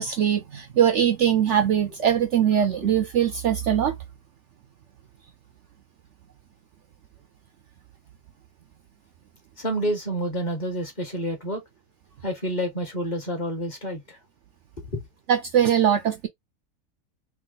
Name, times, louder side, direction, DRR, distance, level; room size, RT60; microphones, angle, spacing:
voice 1, 0.0-4.0 15.3-16.3, right 9 dB, 65° right, 0.8 m, -21 dB
voice 2, 9.6-11.6 12.2-14.2 14.9-15.0, equal, 35° left, 1.1 m, -29 dB
3.5 x 2.3 x 3.7 m
omnidirectional pair, 1.6 m